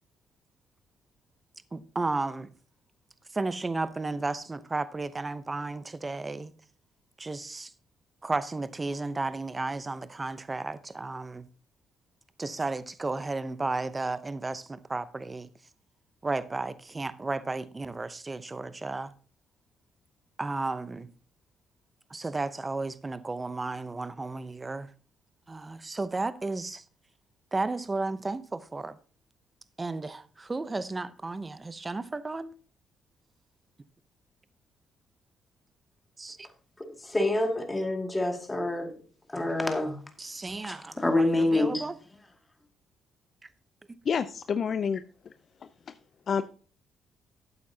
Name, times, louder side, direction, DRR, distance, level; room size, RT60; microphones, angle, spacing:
voice 1, 1.7-2.5 3.3-6.5 7.2-7.7 8.2-11.5 12.4-15.5 16.2-19.1 20.4-21.1 22.1-24.9 25.5-26.8 27.5-29.0 29.8-32.5 36.2-36.5 40.2-42.0, right 3 dB, 25° right, 0.8 m, -33 dB
voice 2, 36.8-38.9 39.3-40.0 40.6-41.8, left 2 dB, 15° left, 2.3 m, -27 dB
voice 3, 44.0-45.3 45.9-46.0 46.3-46.4, left 6 dB, 50° left, 0.5 m, -29 dB
12.5 x 8.5 x 2.8 m
cardioid pair, 90°, 0 cm